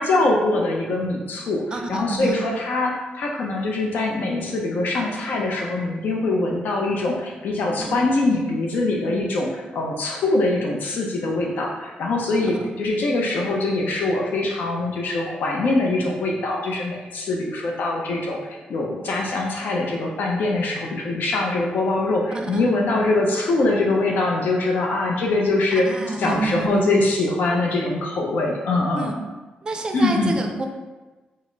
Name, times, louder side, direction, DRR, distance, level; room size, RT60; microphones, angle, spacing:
voice 1, 0.0-1.6 1.9-18.4 18.7-25.8 26.2-29.1 29.9-30.4, left 2 dB, 70° left, -1 dB, 0.5 m, -23 dB
voice 2, 1.7-2.4 7.8-8.0 8.3-8.4 12.5-12.7 22.3-22.7 25.8-26.8 29.0-29.2 29.6-30.7, right 3 dB, 25° right, 3 dB, 0.4 m, -28 dB
5.1 x 2.0 x 3.8 m, 1.2 s
wide cardioid pair, 155°, 3 cm